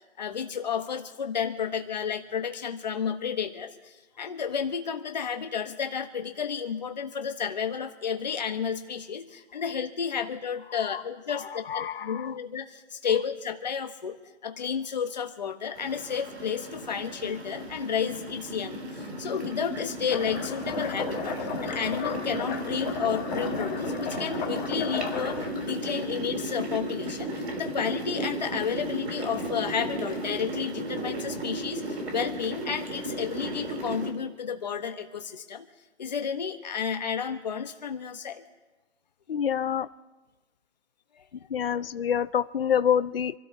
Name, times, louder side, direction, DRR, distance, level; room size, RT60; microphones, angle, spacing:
voice 1, 0.2-14.2 14.4-35.6 36.0-38.4, left 7 dB, 35° left, 6 dB, 1.2 m, -32 dB
voice 2, 11.7-12.2 39.3-39.9 41.5-43.3, left 8 dB, 55° left, 14 dB, 0.5 m, -26 dB
sound 1, 15.7-34.1, right 1 dB, 60° right, 3.6 m, -35 dB
sound 2, 20.1-25.7, left 5 dB, 15° left, 1.7 m, -35 dB
27.5 x 13.0 x 2.9 m, 1.2 s
hypercardioid pair, 170°, 36 cm